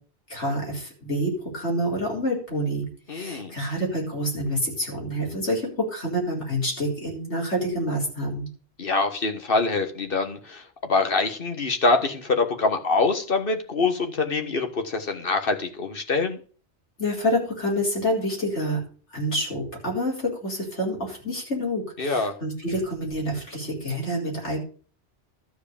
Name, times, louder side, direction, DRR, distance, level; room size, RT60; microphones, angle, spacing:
voice 1, 0.3-8.5 17.0-18.8 19.1-24.6, equal, 80° left, -3 dB, 4.8 m, -27 dB
voice 2, 3.1-3.5 8.8-16.4 22.0-22.3, left 3 dB, 55° left, 6 dB, 1.6 m, -25 dB
12.5 x 4.9 x 8.4 m, 0.40 s
omnidirectional pair, 1.2 m